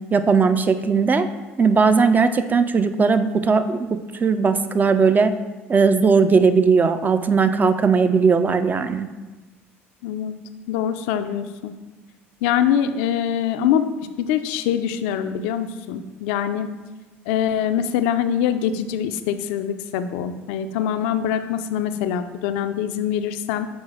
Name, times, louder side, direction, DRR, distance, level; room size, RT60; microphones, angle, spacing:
voice 1, 0.1-1.3 1.6-5.3 5.7-9.1, right 5 dB, 25° right, 10 dB, 0.5 m, -18 dB
voice 2, 10.0-10.4 10.7-11.7 12.4-16.7 17.3-23.7, left 9 dB, 70° left, 10 dB, 0.4 m, -24 dB
6.2 x 4.7 x 3.5 m, 1.2 s
hypercardioid pair, 65°, 7 cm